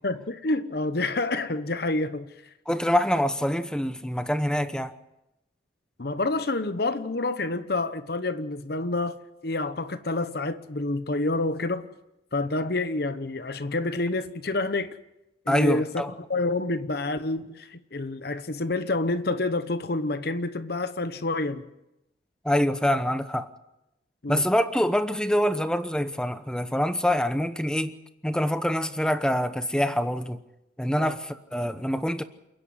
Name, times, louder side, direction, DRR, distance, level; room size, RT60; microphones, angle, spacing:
voice 1, 0.0-2.3 6.0-11.9 12.3-14.9 15.5-16.0 16.3-21.7 24.2-24.5 31.0-31.2, left 2 dB, 55° left, 1.0 m, -28 dB
voice 2, 2.7-4.9 15.5-16.1 22.4-23.5 24.3-27.9 28.2-30.4 30.8-32.2, equal, 5° left, 0.9 m, -25 dB
28.5 x 10.5 x 9.5 m
head